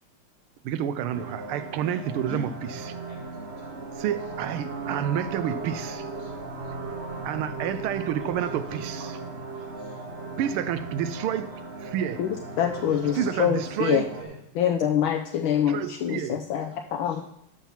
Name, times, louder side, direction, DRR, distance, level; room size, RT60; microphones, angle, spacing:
voice 1, 0.6-3.0 4.0-6.1 7.2-9.1 10.4-12.3 13.2-14.1 15.7-16.4, right 9 dB, 85° right, 1.5 m, -29 dB
sound 1, 1.1-14.2, right 3 dB, 40° right, 1.0 m, -37 dB
voice 2, 1.9-2.4 2.7-3.2 3.6-4.0 5.9-6.3 7.9-9.2 9.5-10.0 11.5-11.6 12.8-13.2 13.8-13.9 14.2-14.4 15.9-16.0 16.7-17.2, equal, 65° right, 3.7 m, -47 dB
voice 3, 12.2-14.0 14.5-17.2, left 9 dB, 75° left, 1.4 m, -25 dB
12.5 x 5.7 x 4.5 m
omnidirectional pair, 2.4 m